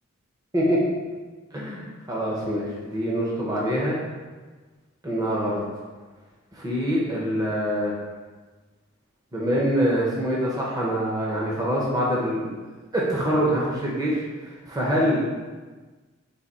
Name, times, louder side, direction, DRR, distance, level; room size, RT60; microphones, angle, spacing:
voice 1, 1.5-4.0 5.0-5.6 6.5-7.9 9.3-12.5 12.9-15.4, equal, 20° right, -5 dB, 0.7 m, -25 dB
4.1 x 2.8 x 4.0 m, 1.3 s
head